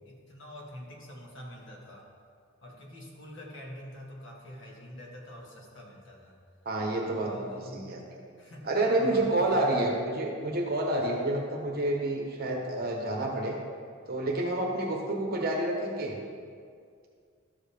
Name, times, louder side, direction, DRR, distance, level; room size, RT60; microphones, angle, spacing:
voice 1, 0.1-2.1 2.6-6.4 7.2-7.9 8.4-9.9, equal, 65° left, -2 dB, 1.7 m, -45 dB
voice 2, 6.6-8.0 8.6-13.6 14.1-16.2, right 1 dB, 50° right, 0 dB, 1.2 m, -29 dB
12.5 x 7.2 x 3.5 m, 2.2 s
head